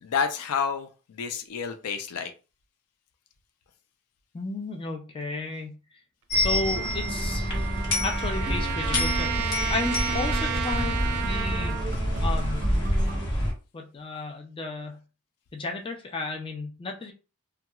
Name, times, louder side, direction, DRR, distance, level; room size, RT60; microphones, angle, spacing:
voice 1, 0.0-2.3, left 6 dB, 85° left, 8 dB, 0.4 m, -29 dB
voice 2, 4.3-5.7 6.4-7.5 8.0-11.8 12.2-12.7 13.7-15.0 15.5-17.1, left 3 dB, 25° left, 2 dB, 0.4 m, -33 dB
sound 1, 6.3-13.5, equal, 55° left, 1.1 m, -27 dB
sound 2, 6.7-13.3, right 3 dB, 40° right, 0.6 m, -38 dB
Trumpet, 6.7-11.9, right 7 dB, 85° right, 0.4 m, -33 dB
2.9 x 2.2 x 2.3 m, 0.33 s
head